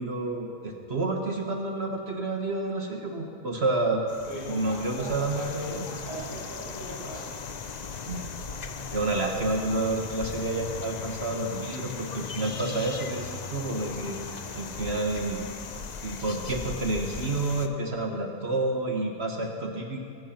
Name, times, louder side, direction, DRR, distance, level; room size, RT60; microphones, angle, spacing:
voice 1, 0.0-4.0 4.4-5.9 8.1-8.3 8.9-15.4 16.0-20.0, right 2 dB, 45° right, 2 dB, 1.4 m, -29 dB
sound 1, 4.1-17.7, left 5 dB, 55° left, 0.4 m, -38 dB
voice 2, 4.3-5.5 5.9-7.2, right 1 dB, 80° left, -7 dB, 5.6 m, -40 dB
21.0 x 9.5 x 5.7 m, 2.4 s
omnidirectional pair, 1.6 m